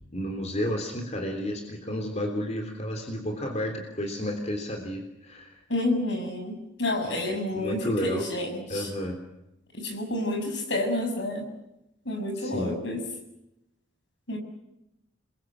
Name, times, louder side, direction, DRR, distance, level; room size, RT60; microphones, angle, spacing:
voice 1, 0.0-5.5 7.2-8.3 8.7-9.2 12.3-12.8, equal, 35° left, 3 dB, 3.5 m, -32 dB
voice 2, 5.7-8.9 9.7-11.5 12.1-13.0 14.3-14.4, left 1 dB, 70° left, 5 dB, 7.1 m, -29 dB
29.5 x 22.0 x 7.6 m, 0.89 s
head